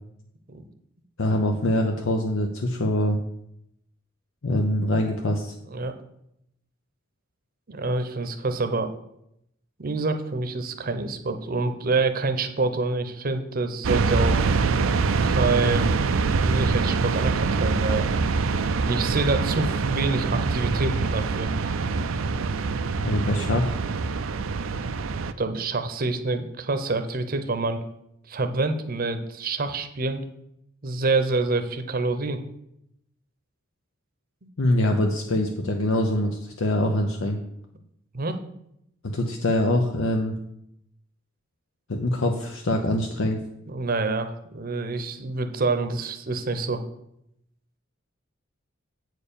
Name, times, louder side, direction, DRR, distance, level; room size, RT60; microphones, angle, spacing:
voice 1, 1.2-3.2 4.4-5.5 23.0-23.8 34.6-37.4 39.1-40.3 41.9-43.4, left 1 dB, 75° left, 3 dB, 0.8 m, -24 dB
voice 2, 7.7-8.9 9.8-14.5 15.2-16.0 16.4-18.1 18.8-21.5 25.4-27.8 28.3-30.2 30.8-32.4 38.1-38.4 43.7-46.8, right 3 dB, 45° right, 8 dB, 0.8 m, -27 dB
sound 1, 13.8-25.3, right 4 dB, 80° right, 0.5 m, -24 dB
8.2 x 4.6 x 6.9 m, 0.78 s
head